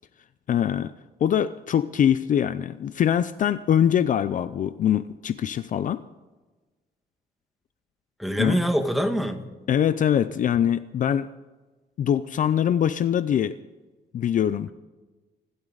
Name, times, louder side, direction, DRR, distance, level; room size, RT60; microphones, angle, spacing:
voice 1, 0.5-0.9 1.2-6.0 8.4-8.6 9.7-11.3 12.0-13.6 14.1-14.7, left 9 dB, 45° left, 14 dB, 0.5 m, -23 dB
voice 2, 8.2-9.4, equal, ahead, 5 dB, 1.5 m, -24 dB
27.0 x 12.5 x 4.0 m, 1.2 s
cardioid pair, 155°, 18 cm